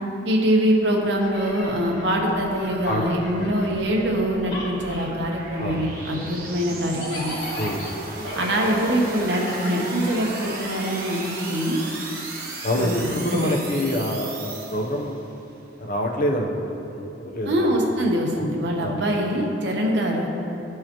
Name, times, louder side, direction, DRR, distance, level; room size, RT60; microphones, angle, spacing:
voice 1, 0.2-7.3 8.3-11.8 12.7-13.5 17.5-20.3, equal, 75° right, 0 dB, 1.0 m, -24 dB
sound 1, 1.0-4.2 4.4-10.4, left 1 dB, 80° left, 1.4 m, -38 dB
sound 2, 1.5-15.3, right 2 dB, 55° right, 1.3 m, -36 dB
voice 2, 3.4-3.8 5.6-6.3 7.6-7.8 12.6-15.2 15.8-17.7 18.4-18.5 18.8-19.0, left 1 dB, 50° left, 1 dB, 0.8 m, -27 dB
13.0 x 4.7 x 3.0 m, 2.8 s
head